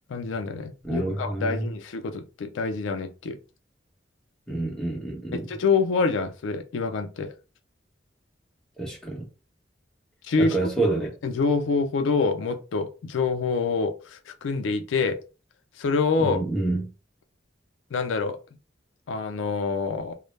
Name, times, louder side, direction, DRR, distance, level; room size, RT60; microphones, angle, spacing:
voice 1, 0.1-3.4 5.3-7.3 10.2-10.6 11.2-15.2 15.8-16.4 17.9-18.4 19.1-20.1, left 4 dB, 90° left, 0.4 m, -26 dB
voice 2, 0.8-1.7 4.5-5.5 8.8-9.2 10.4-11.1 16.2-16.9, right 2 dB, 5° left, 0.8 m, -28 dB
2.1 x 2.0 x 3.1 m
head